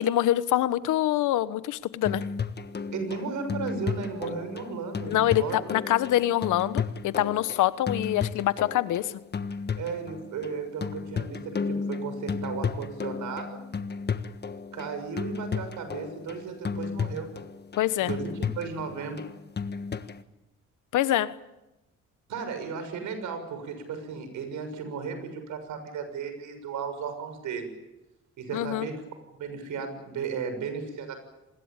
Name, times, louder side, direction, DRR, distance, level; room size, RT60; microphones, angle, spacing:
voice 1, 0.0-2.2 5.1-9.1 17.8-18.1 20.9-21.3 28.5-28.9, left 13 dB, 85° left, 15 dB, 1.2 m, -25 dB
sound 1, 2.0-20.2, left 5 dB, 35° left, 1.4 m, -33 dB
voice 2, 2.9-5.7 9.8-13.6 14.7-17.3 18.0-19.2 22.3-27.7 28.4-29.0 29.3-31.2, right 5 dB, 75° right, 8 dB, 6.9 m, -35 dB
26.5 x 21.0 x 9.0 m, 0.98 s
cardioid pair, 90°, 30 cm